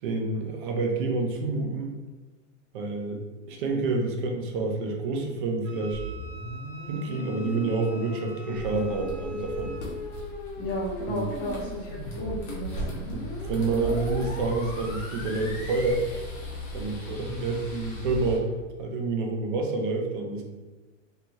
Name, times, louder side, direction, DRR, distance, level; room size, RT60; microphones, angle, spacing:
voice 1, 0.0-2.0 2.7-6.0 6.9-9.7 11.1-11.3 13.1-16.0 16.7-18.5 18.8-20.4, right 3 dB, 40° right, 2 dB, 0.4 m, -28 dB
Wind instrument woodwind instrument, 5.6-9.9, right 2 dB, 80° right, 0.7 m, -47 dB
sound 1, 5.9-15.9, left 2 dB, 85° left, 0.9 m, -39 dB
sound 2, 8.5-18.4, equal, 60° left, 1.0 m, -38 dB
voice 2, 10.6-13.0, equal, 20° left, -8 dB, 0.6 m, -33 dB
2.7 x 2.3 x 3.0 m, 1.2 s
supercardioid pair, 170°, 39 cm